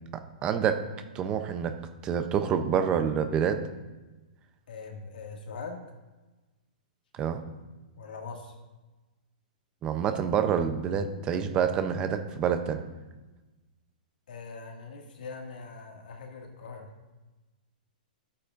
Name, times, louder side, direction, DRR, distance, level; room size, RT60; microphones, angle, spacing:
voice 1, 0.4-0.8 1.1-1.7 2.0-3.6 7.2-7.4 9.8-12.8, right 8 dB, 20° right, 7 dB, 0.6 m, -27 dB
voice 2, 4.7-5.8 8.0-8.5 14.3-16.9, left 4 dB, 80° left, 1 dB, 2.1 m, -42 dB
13.5 x 8.4 x 2.6 m, 1.2 s
hypercardioid pair, 170°, 5 cm